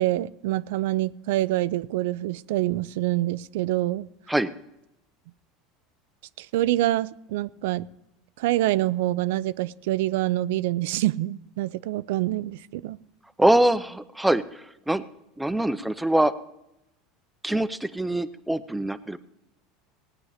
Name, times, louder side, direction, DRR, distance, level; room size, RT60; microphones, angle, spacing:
voice 1, 0.0-4.1 6.4-7.9 8.4-13.0, right 16 dB, 80° right, 0.4 m, -26 dB
voice 2, 13.4-15.1 15.4-16.3 17.4-19.2, right 1 dB, 5° right, 0.6 m, -23 dB
17.0 x 9.7 x 4.9 m
supercardioid pair, 115°, 0 cm